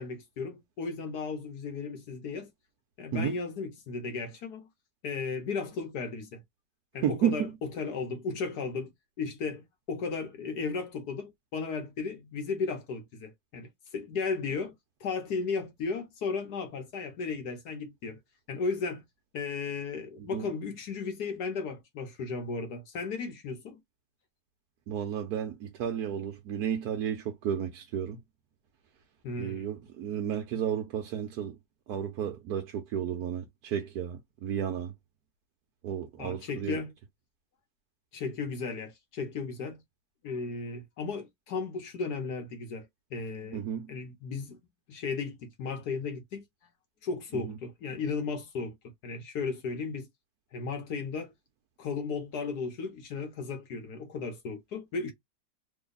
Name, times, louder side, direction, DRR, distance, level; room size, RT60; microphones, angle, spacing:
voice 1, 0.0-2.5 3.0-4.7 5.0-6.4 6.9-8.9 9.2-14.7 15.0-18.2 18.5-19.0 19.3-23.8 29.2-29.7 36.2-36.9 38.1-39.8 40.2-42.9 43.1-43.6 43.9-44.6 44.9-46.4 47.0-48.7 49.0-50.1 50.5-51.3 51.8-55.1, left 4 dB, 65° left, 1.4 m, -35 dB
voice 2, 7.0-7.5 20.2-20.5 24.9-28.2 29.4-31.6 31.9-34.9 35.8-36.8 43.5-43.9 47.3-47.6, right 9 dB, 65° right, 1.2 m, -32 dB
3.4 x 2.2 x 3.9 m
omnidirectional pair, 1.9 m